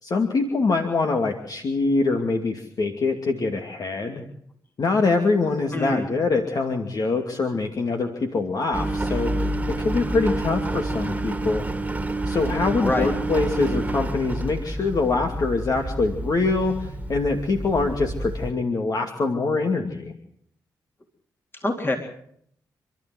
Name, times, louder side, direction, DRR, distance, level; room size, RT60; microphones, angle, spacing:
voice 1, 0.0-4.2 4.8-11.7 12.3-20.1, left 3 dB, 55° left, 3 dB, 2.6 m, -24 dB
voice 2, 5.7-6.1 12.8-13.1 21.6-22.0, left 2 dB, 30° left, 2 dB, 3.7 m, -24 dB
Engine, 8.7-18.5, right 1 dB, 20° right, 2.2 m, -28 dB
28.0 x 12.5 x 7.8 m, 0.66 s
cardioid pair, 60°, 8 cm